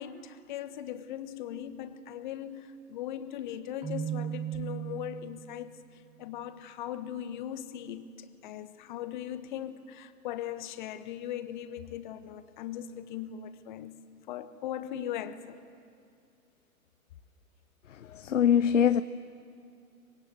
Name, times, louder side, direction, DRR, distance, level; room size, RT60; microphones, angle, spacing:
voice 1, 0.0-5.8 6.2-13.9 14.3-15.6, left 10 dB, 35° left, 1.2 m, -39 dB
Keyboard (musical), 3.8-5.7, right 10 dB, 15° right, 1.7 m, -36 dB
voice 2, 18.2-19.0, left 8 dB, 60° left, 0.7 m, -22 dB
25.0 x 21.5 x 7.9 m
figure-of-eight pair, 125°, 43 cm